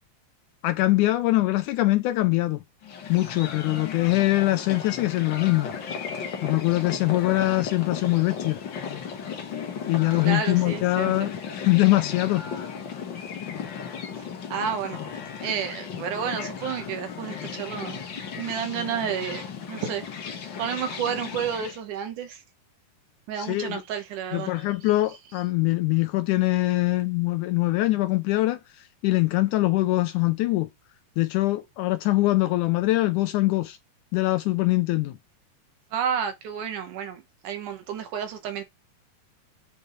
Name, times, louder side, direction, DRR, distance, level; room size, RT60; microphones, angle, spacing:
voice 1, 0.6-2.6 3.1-5.7 6.4-8.6 9.9-12.5 23.4-23.8 24.3-30.7 31.2-33.8 34.1-35.2, left 18 dB, 80° left, 1.9 m, -23 dB
sound 1, 2.8-21.8, left 6 dB, 55° left, 1.4 m, -35 dB
voice 2, 10.1-11.3 14.5-15.0 15.4-18.0 18.4-20.1 20.6-22.4 23.3-24.5 35.9-38.6, right 8 dB, 70° right, 2.5 m, -31 dB
8.4 x 4.5 x 3.1 m
omnidirectional pair, 3.9 m